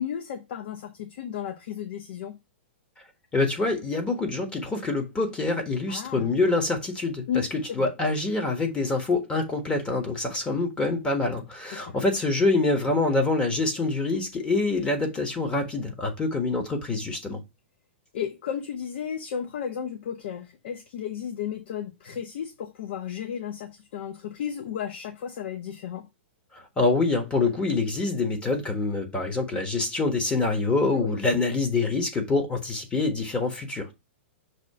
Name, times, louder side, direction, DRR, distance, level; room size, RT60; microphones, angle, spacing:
voice 1, 0.0-2.4 5.9-6.3 7.3-7.5 7.8-7.9 11.7-12.0 18.1-26.1 30.9-31.2, left 8 dB, 60° left, 0.9 m, -33 dB
voice 2, 3.3-17.4 26.8-33.9, left 3 dB, 15° left, 1.4 m, -26 dB
6.2 x 2.8 x 5.4 m
hypercardioid pair, 140°, 6 cm